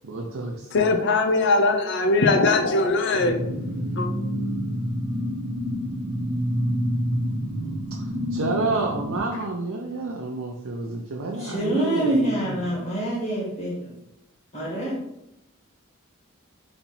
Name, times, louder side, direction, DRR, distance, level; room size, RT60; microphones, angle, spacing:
voice 1, 0.0-0.9 7.9-12.7, right 3 dB, 85° right, 0 dB, 0.6 m, -30 dB
voice 2, 0.7-3.4 4.0-4.1, left 3 dB, 60° left, 6 dB, 0.5 m, -20 dB
sound 1, 3.2-9.2, equal, 10° right, 1.3 m, -28 dB
voice 3, 11.4-13.9 14.5-15.0, right 1 dB, 40° left, -6 dB, 1.5 m, -26 dB
4.2 x 2.8 x 4.2 m, 0.83 s
head